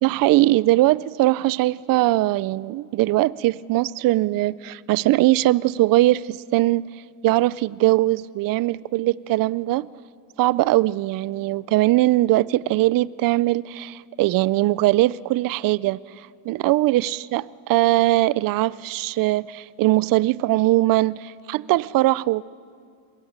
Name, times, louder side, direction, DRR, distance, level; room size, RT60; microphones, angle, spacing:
voice 1, 0.0-6.8 7.2-9.9 10.4-16.0 16.5-22.4, right 17 dB, 50° right, 0.5 m, -20 dB
23.0 x 21.0 x 8.8 m
cardioid pair, 110°, 45 cm